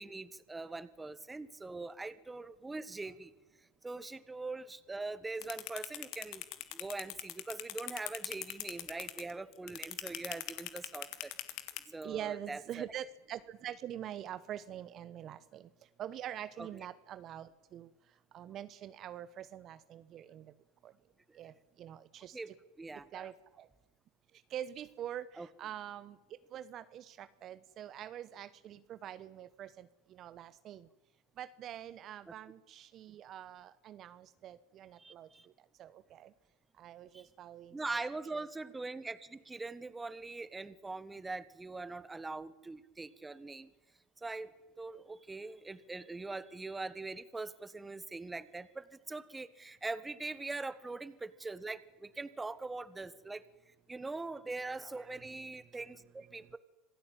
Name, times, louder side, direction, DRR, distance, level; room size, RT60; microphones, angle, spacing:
voice 1, 0.0-3.3 3.8-6.4 6.7-11.3 11.9-12.9 16.6-16.7 21.3-21.4 22.3-23.3 25.4-25.5 32.3-32.4 35.0-35.5 37.1-37.3 37.7-43.7 44.2-53.4 53.9-56.6, right 3 dB, 10° right, 15 dB, 1.5 m, -42 dB
sound 1, 5.4-11.8, left 16 dB, 55° left, 2.2 m, -40 dB
voice 2, 12.0-15.7 16.0-17.9 18.3-20.4 20.8-20.9 21.4-21.5 21.8-22.5 23.1-23.7 24.5-26.2 26.5-30.9 31.4-35.3 35.8-36.3 36.8-38.0 55.0-55.2, right 11 dB, 40° right, 14 dB, 1.0 m, -45 dB
26.5 x 16.5 x 9.0 m, 1.1 s
supercardioid pair, 110°, 0 cm